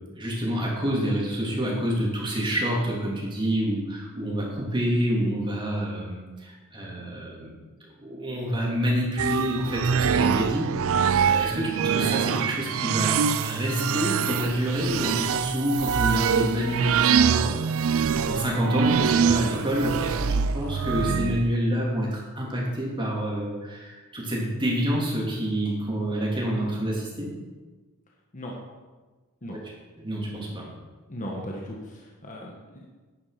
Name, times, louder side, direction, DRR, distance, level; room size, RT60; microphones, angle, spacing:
voice 1, 0.1-7.6 8.0-13.1 13.4-27.3 29.5-29.6 30.0-30.7, equal, 20° right, -4 dB, 3.3 m, -28 dB
sound 1, 9.2-21.5, right 7 dB, 65° right, 0.5 m, -24 dB
voice 2, 31.1-32.9, equal, 35° left, -1 dB, 1.5 m, -37 dB
11.0 x 9.8 x 5.1 m, 1.3 s
head